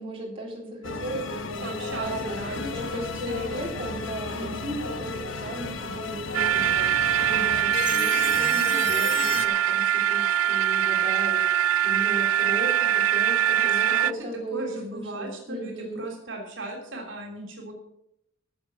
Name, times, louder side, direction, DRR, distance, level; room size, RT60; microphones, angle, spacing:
voice 1, 0.0-16.0, right 1 dB, 25° right, -3 dB, 3.7 m, -36 dB
sound 1, 0.8-9.5, left 4 dB, 70° left, 1.1 m, -34 dB
voice 2, 1.6-3.0 3.3-4.0 4.3-4.7 13.5-17.7, right 1 dB, 65° right, 1 dB, 3.1 m, -37 dB
sound 2, 6.3-14.1, right 10 dB, 85° right, 0.4 m, -23 dB
15.0 x 7.2 x 7.0 m, 0.79 s
head